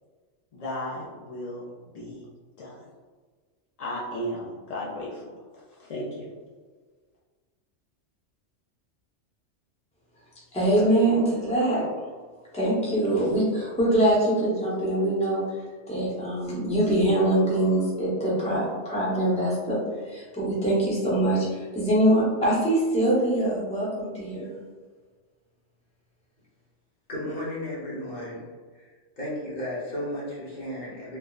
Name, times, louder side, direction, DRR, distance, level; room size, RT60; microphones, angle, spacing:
voice 1, 0.5-1.7 1.9-2.3 2.6-2.9 3.8-5.3 5.8-6.3, equal, 70° left, -6 dB, 0.3 m, -35 dB
voice 2, 10.5-11.8 12.5-15.4 15.9-19.8 20.1-24.5, right 1 dB, 5° left, -7 dB, 0.6 m, -23 dB
voice 3, 27.1-28.9 29.2-31.2, left 1 dB, 45° left, -6 dB, 0.8 m, -34 dB
3.3 x 2.0 x 2.3 m, 1.4 s
omnidirectional pair, 1.2 m